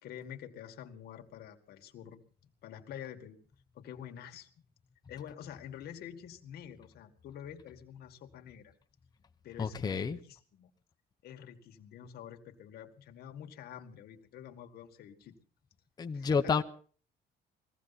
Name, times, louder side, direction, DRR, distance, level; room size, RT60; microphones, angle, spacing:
voice 1, 0.0-3.4 3.7-4.5 5.1-8.7 9.4-10.7 11.2-15.4 16.1-16.5, left 9 dB, 60° left, 2.0 m, -48 dB
voice 2, 9.6-10.2 16.0-16.6, left 5 dB, 20° left, 0.9 m, -30 dB
21.0 x 15.5 x 4.2 m
cardioid pair, 140°, 18 cm